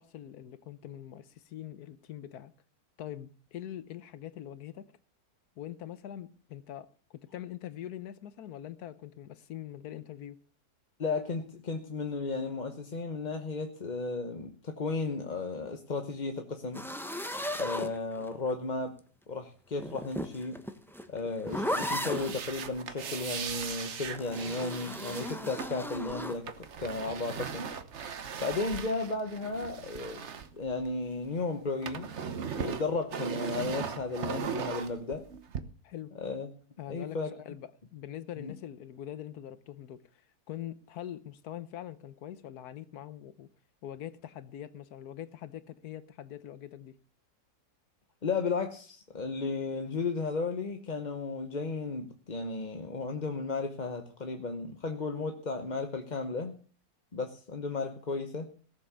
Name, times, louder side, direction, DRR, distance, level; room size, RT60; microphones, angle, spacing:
voice 1, 0.0-2.5 3.0-4.9 5.6-10.4 35.8-36.1 36.8-43.5 43.8-47.0, left 11 dB, 85° left, 1.4 m, -43 dB
voice 2, 11.0-16.8 17.6-19.0 19.3-20.6 21.1-26.5 26.8-27.7 28.4-30.2 30.5-32.1 32.6-35.2 36.2-36.5 36.9-37.3 38.4-38.5 48.2-56.5 57.1-58.5, left 3 dB, 35° left, 1.0 m, -34 dB
sound 1, 16.7-18.5 19.7-22.4 24.1-26.4, equal, ahead, 1.0 m, -36 dB
sound 2, 21.5-31.3 31.5-35.6, right 6 dB, 50° right, 1.2 m, -39 dB
17.5 x 7.4 x 6.8 m
omnidirectional pair, 1.6 m